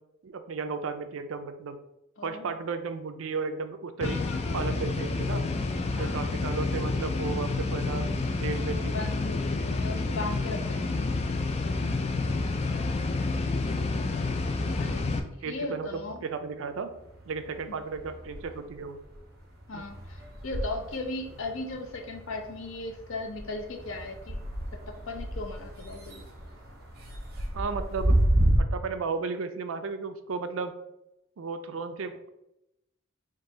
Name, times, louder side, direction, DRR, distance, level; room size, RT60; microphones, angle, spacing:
voice 1, 0.2-1.8 2.2-4.2 4.5-5.4 6.0-9.0 14.8-14.9 15.4-16.9 17.3-19.0 19.7-19.9 27.5-28.2 28.6-30.8 31.4-32.3, right 4 dB, 75° right, 9 dB, 0.4 m, -34 dB
voice 2, 2.2-2.5 4.0-4.9 5.9-6.2 8.9-11.0 14.8-15.1 15.4-16.2 19.7-24.5 24.9-26.2, left 2 dB, 75° left, 4 dB, 0.7 m, -37 dB
sound 1, 4.0-15.2, left 3 dB, 30° left, 0.3 m, -29 dB
sound 2, 15.3-16.6 16.9-28.6, right 1 dB, 50° right, 1.3 m, -32 dB
3.8 x 2.6 x 3.8 m, 0.87 s
head